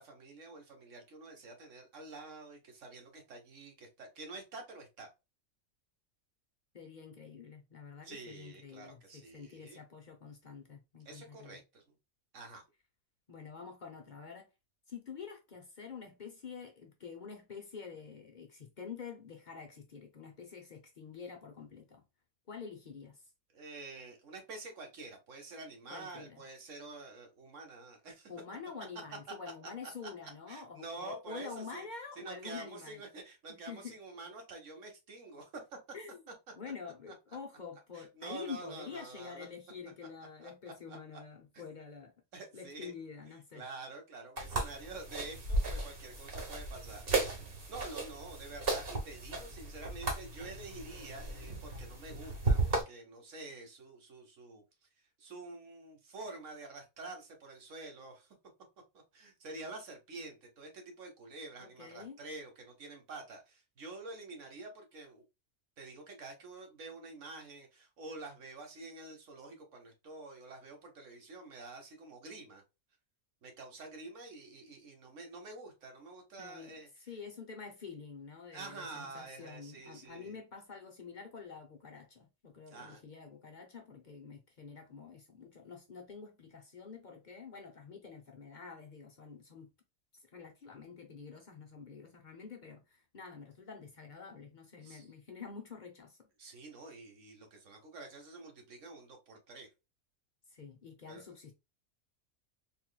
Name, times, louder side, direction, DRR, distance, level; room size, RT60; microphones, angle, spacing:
voice 1, 0.0-5.1 8.0-9.8 11.0-11.9 12.3-12.6 23.5-28.3 30.0-30.1 30.5-31.8 32.2-35.6 37.1-37.2 37.9-39.5 40.4-41.0 41.5-41.6 42.3-42.9 43.3-47.1 47.7-54.6 55.2-58.4 59.1-65.2 65.8-72.6 73.4-76.9 78.5-80.4 82.7-83.0 94.8-95.1 96.4-99.7 101.1-101.2, right 3 dB, 60° right, 1.3 m, -48 dB
voice 2, 6.7-11.6 13.3-14.5 14.9-22.0 22.5-23.2 25.9-26.4 28.3-33.0 33.5-34.0 35.9-36.2 36.6-42.1 42.5-43.6 61.6-62.2 76.4-89.7 90.3-96.2 100.5-101.5, left 5 dB, 55° left, 0.5 m, -47 dB
sound 1, 44.4-52.8, right 2 dB, 45° right, 1.2 m, -35 dB
3.9 x 3.0 x 2.2 m
omnidirectional pair, 1.5 m